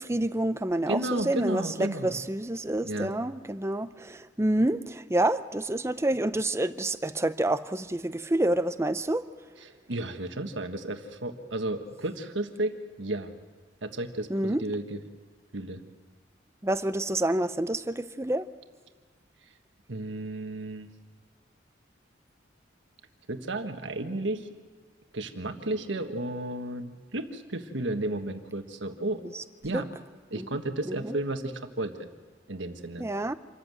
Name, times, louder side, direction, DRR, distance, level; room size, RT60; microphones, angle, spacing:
voice 1, 0.0-9.3 14.3-14.6 16.6-18.4 29.3-29.4 29.7-29.8 30.3-30.5 30.9-31.1 33.0-33.3, right 1 dB, 15° right, 12 dB, 0.6 m, -28 dB
voice 2, 0.9-2.1 2.8-3.1 9.6-13.3 13.8-15.0 15.5-15.8 19.9-20.9 23.3-24.5 25.1-29.2 29.6-29.9 30.3-32.1 32.5-33.0, right 1 dB, 80° right, 6 dB, 1.5 m, -33 dB
26.5 x 14.0 x 7.8 m, 1.6 s
head